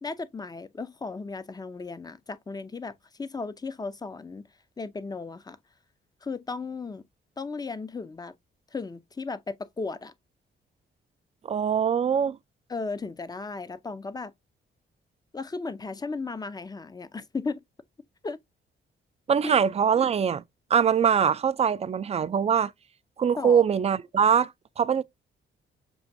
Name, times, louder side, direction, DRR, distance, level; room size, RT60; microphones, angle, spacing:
voice 1, 0.0-4.5 4.8-5.6 6.2-7.0 7.4-8.3 8.7-10.1 12.7-14.3 15.3-17.6 18.2-18.4 19.4-19.6 23.4-23.6, left 4 dB, 20° left, 0.5 m, -35 dB
voice 2, 11.4-12.4 19.3-20.4 20.7-22.7 23.2-24.5 24.8-25.0, right 7 dB, 30° right, 0.4 m, -22 dB
6.9 x 2.5 x 2.6 m
cardioid pair, 90°, 20 cm